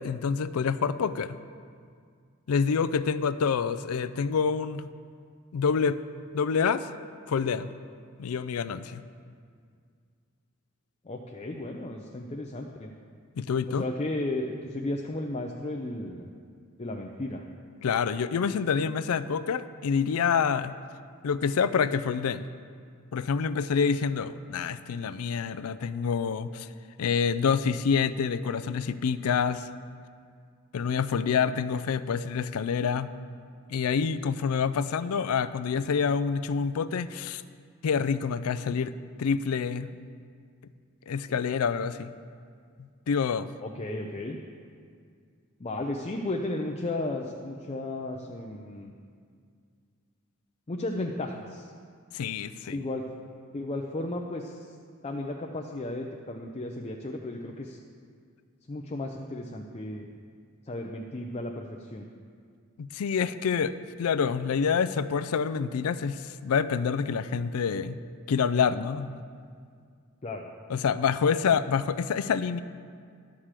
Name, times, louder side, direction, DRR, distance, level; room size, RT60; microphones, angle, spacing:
voice 1, 0.0-1.4 2.5-4.9 5.5-6.0 6.3-6.9 7.3-7.7 8.2-9.0 13.4-13.8 17.8-20.7 21.2-22.5 23.1-26.7 27.0-29.7 30.7-33.1 33.7-37.4 37.8-38.9 39.2-39.9 41.1-42.1 42.8-43.5 52.1-52.8 62.8-68.0 68.3-69.2 70.7-72.6, left 6 dB, 85° left, 14 dB, 0.4 m, -27 dB
voice 2, 11.0-12.9 13.7-16.3 16.8-17.4 41.3-41.4 43.6-44.4 45.6-48.9 50.7-51.7 52.7-53.0 53.5-54.7 55.0-57.8 58.7-60.1 60.7-62.1 70.2-70.5, left 2 dB, 30° left, 1 dB, 0.5 m, -34 dB
11.5 x 4.9 x 7.4 m, 2.2 s
head